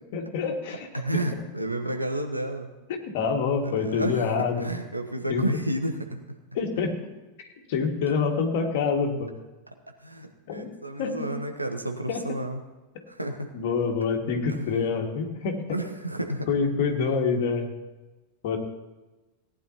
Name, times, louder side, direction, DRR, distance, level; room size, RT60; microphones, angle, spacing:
voice 1, 0.1-0.9 1.1-1.2 3.1-4.7 5.3-5.4 6.6-7.0 7.4-9.3 10.5-10.7 11.0-11.3 12.1-12.2 13.5-15.6 16.5-17.7 18.4-18.6, left 5 dB, 50° left, 2 dB, 1.9 m, -26 dB
voice 2, 0.9-2.7 3.6-6.2 9.7-9.8 10.0-12.6 13.1-13.5 14.5-14.8 15.7-16.5, right 1 dB, 85° right, 4 dB, 1.2 m, -31 dB
18.0 x 9.8 x 2.9 m, 1.1 s
figure-of-eight pair, 90°, 0 cm